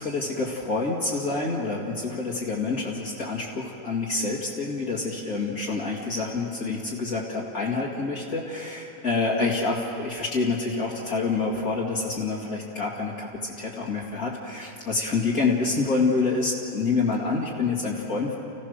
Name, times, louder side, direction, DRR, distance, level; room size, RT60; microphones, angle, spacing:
voice 1, 0.0-18.4, left 3 dB, 65° left, -4 dB, 2.6 m, -27 dB
30.0 x 16.0 x 6.5 m, 2.7 s
omnidirectional pair, 1.6 m